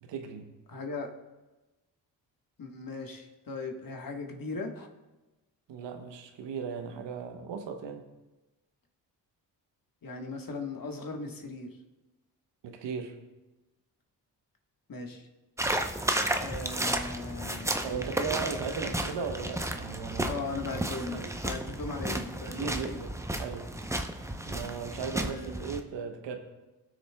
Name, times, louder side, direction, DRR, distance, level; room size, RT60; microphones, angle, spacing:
voice 1, 0.0-0.5 5.7-8.0 12.6-13.2 17.8-21.3 22.4-23.1 23.4-23.7 24.5-26.4, right 6 dB, 75° right, 6 dB, 1.0 m, -37 dB
voice 2, 0.7-1.1 2.6-4.9 10.0-11.7 14.9-15.2 16.4-17.8 20.2-23.0 25.1-25.6, left 3 dB, 50° left, 3 dB, 1.5 m, -38 dB
sound 1, 15.6-25.8, right 1 dB, 5° right, 0.7 m, -33 dB
17.5 x 6.4 x 2.3 m, 1.1 s
supercardioid pair, 45°, 44 cm